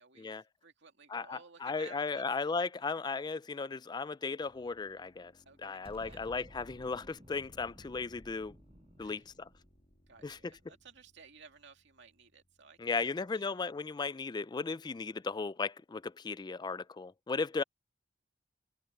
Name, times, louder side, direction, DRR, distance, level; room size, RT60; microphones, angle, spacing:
voice 1, 0.0-2.2 5.5-6.2 9.0-9.2 10.1-13.6, right 4 dB, 60° right, 2.5 m, -56 dB
voice 2, 1.1-5.3 5.6-8.5 9.0-9.5 10.2-10.5 12.8-17.6, left 4 dB, 20° left, 0.3 m, -36 dB
sound 1, 4.4-14.0, left 1 dB, 35° left, 2.8 m, -69 dB
Explosion, 5.8-11.0, equal, 30° right, 4.2 m, -56 dB
head